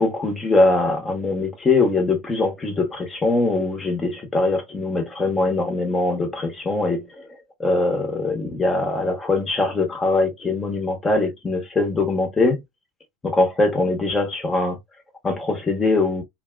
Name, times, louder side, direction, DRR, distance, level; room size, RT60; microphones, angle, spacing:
voice 1, 0.0-7.3 7.6-12.6 13.2-14.8 15.2-16.2, left 2 dB, 20° left, 0.9 m, -22 dB
2.7 x 2.2 x 2.2 m
hypercardioid pair, 90°, 0 cm